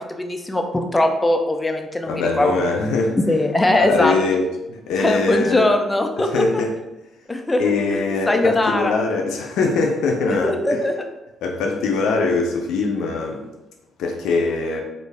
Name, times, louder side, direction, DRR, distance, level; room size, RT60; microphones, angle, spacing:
voice 1, 0.0-2.5 2.8-2.9 3.3-4.2 5.0-6.6 7.3-8.9 10.3-10.9, left 1 dB, 15° left, 5 dB, 0.5 m, -21 dB
voice 2, 2.1-3.2 3.7-5.7 6.2-6.7 7.6-10.8 11.4-13.4 14.0-14.8, left 3 dB, 85° left, 2 dB, 0.5 m, -22 dB
3.2 x 2.5 x 3.4 m, 0.98 s
cardioid pair, 90°, 0 cm